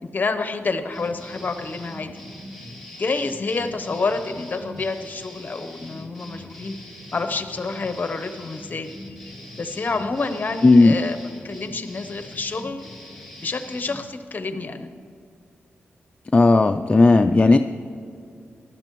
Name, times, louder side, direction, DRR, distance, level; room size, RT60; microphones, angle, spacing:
voice 1, 0.0-2.2 3.0-6.7 7.1-8.9 9.6-11.2 11.4-12.9 13.4-14.9, left 3 dB, 40° left, 8 dB, 0.8 m, -28 dB
sound 1, 0.9-14.1, left 1 dB, ahead, 1.9 m, -42 dB
voice 2, 10.6-10.9 16.3-17.6, left 3 dB, 25° left, 5 dB, 0.4 m, -14 dB
15.0 x 12.0 x 3.1 m, 2.4 s
cardioid pair, 75°, 4 cm